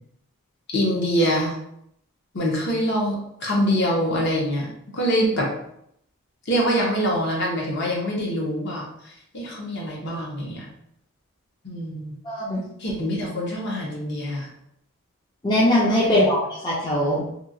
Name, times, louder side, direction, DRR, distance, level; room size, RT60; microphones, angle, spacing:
voice 1, 0.7-1.6 2.3-5.5 6.5-10.7 11.6-12.1 12.8-14.5 16.2-16.3, equal, 50° left, -2 dB, 0.7 m, -24 dB
voice 2, 12.2-12.6 15.4-17.2, left 1 dB, 20° left, -6 dB, 0.5 m, -21 dB
2.9 x 2.7 x 2.5 m, 0.74 s
head